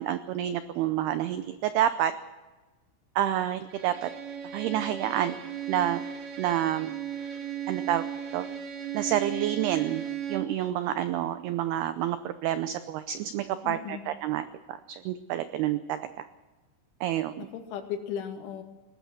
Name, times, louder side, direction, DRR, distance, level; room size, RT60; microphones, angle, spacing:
voice 1, 0.0-2.1 3.2-4.1 4.5-5.4 5.7-6.1 6.4-6.9 7.7-8.0 8.3-8.5 8.9-16.3 17.0-17.5, right 11 dB, 80° right, 11 dB, 2.3 m, -29 dB
Bowed string instrument, 3.7-10.6, right 9 dB, 45° right, 1.9 m, -36 dB
voice 2, 13.6-14.0 17.4-18.6, left 8 dB, 80° left, 5 dB, 4.5 m, -36 dB
21.5 x 19.0 x 6.4 m, 1.2 s
omnidirectional pair, 5.5 m